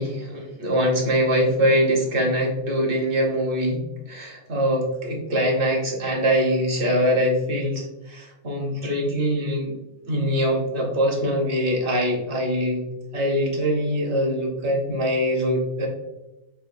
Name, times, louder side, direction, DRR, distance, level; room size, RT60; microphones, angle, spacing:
voice 1, 0.0-9.7 10.1-12.9 13.1-15.9, equal, 50° right, 0 dB, 1.1 m, -23 dB
5.1 x 2.6 x 2.6 m, 0.96 s
omnidirectional pair, 1.2 m